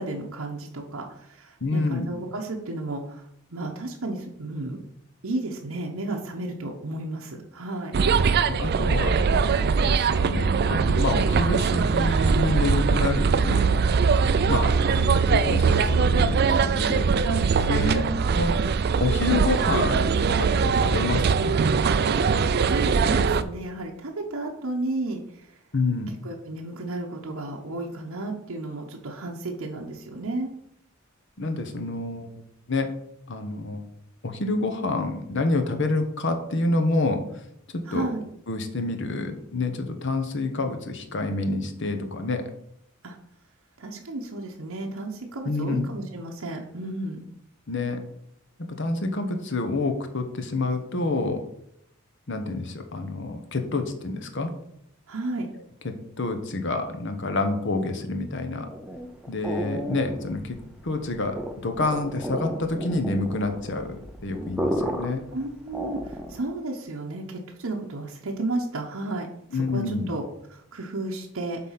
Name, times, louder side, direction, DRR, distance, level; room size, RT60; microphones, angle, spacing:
voice 1, 0.0-4.8 5.2-7.9 17.1-18.3 22.2-25.6 26.2-30.5 37.9-38.2 43.0-43.2 43.8-47.3 55.1-55.5 65.3-71.6, right 2 dB, 75° right, 0 dB, 0.9 m, -33 dB
voice 2, 1.6-2.1 8.5-13.9 14.5-17.1 17.7-18.0 18.3-18.6 19.0-21.6 25.7-26.2 31.4-32.9 33.3-33.9 34.2-37.2 37.7-38.1 38.5-42.4 45.4-45.9 47.7-48.0 48.8-51.4 52.3-54.5 55.8-58.7 59.3-60.6 60.8-65.2 69.5-70.1, left 2 dB, 55° left, 6 dB, 1.0 m, -28 dB
sound 1, 7.9-23.4, right 5 dB, 45° right, 0.4 m, -21 dB
sound 2, 58.7-66.5, equal, 5° right, 0.6 m, -33 dB
7.7 x 4.0 x 5.7 m, 0.75 s
head